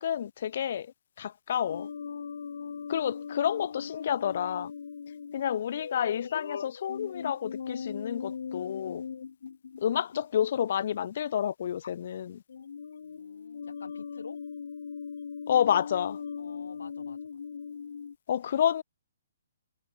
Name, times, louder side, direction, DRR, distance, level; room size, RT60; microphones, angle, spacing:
voice 1, 0.0-1.9 2.9-4.7 5.3-9.0 9.8-12.4 15.5-16.2 18.3-18.8, left 9 dB, 50° left, 0.4 m, -29 dB
sound 1, 1.7-11.1 11.8-12.2 12.5-18.2, left 6 dB, 70° left, 2.0 m, -40 dB
voice 2, 2.5-3.1 5.3-5.5 13.0-14.4 16.4-17.4, left 4 dB, 90° left, 7.0 m, -50 dB
hypercardioid pair, 155°, 0 cm